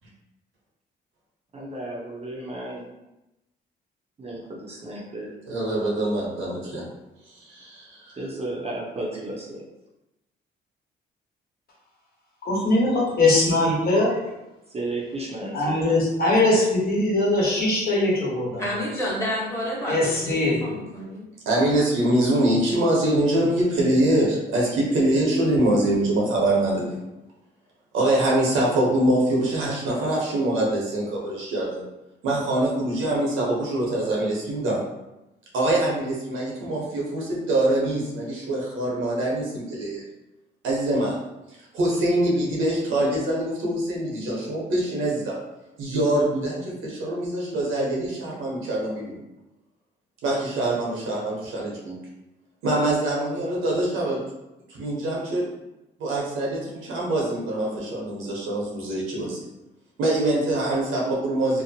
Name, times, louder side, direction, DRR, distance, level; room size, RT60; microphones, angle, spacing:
voice 1, 1.5-2.8 4.2-5.3 8.1-9.6 14.7-15.9, right 2 dB, 30° right, -3 dB, 0.6 m, -33 dB
voice 2, 5.5-6.8 7.4-8.1 21.5-27.0 27.9-31.8 32.2-34.8 35.5-40.0 40.6-41.2 41.7-45.4 45.8-49.2 50.2-52.0 52.6-54.2 54.7-55.5 56.0-59.5 60.0-61.6, right 1 dB, 85° right, -3 dB, 0.9 m, -24 dB
voice 3, 12.4-14.2 15.5-18.6 19.9-20.6, left 2 dB, 50° left, -5 dB, 1.1 m, -21 dB
voice 4, 18.6-21.3, equal, 15° left, -6 dB, 1.2 m, -30 dB
2.7 x 2.1 x 2.7 m, 0.96 s
cardioid pair, 90°, 20 cm